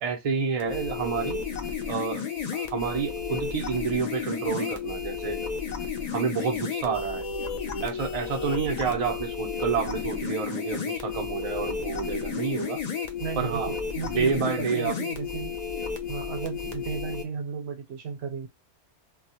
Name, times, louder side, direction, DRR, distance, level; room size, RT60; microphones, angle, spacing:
voice 1, 0.0-1.4 1.9-2.2 2.5-5.4 6.1-7.3 7.8-12.8 13.4-13.7 14.2-15.0, right 6 dB, 50° right, 0.4 m, -29 dB
sound 1, 0.6-17.2, left 6 dB, 60° left, 0.4 m, -32 dB
voice 2, 13.2-15.5 16.1-18.5, right 6 dB, 70° right, 0.9 m, -35 dB
2.2 x 2.0 x 2.8 m
omnidirectional pair, 1.2 m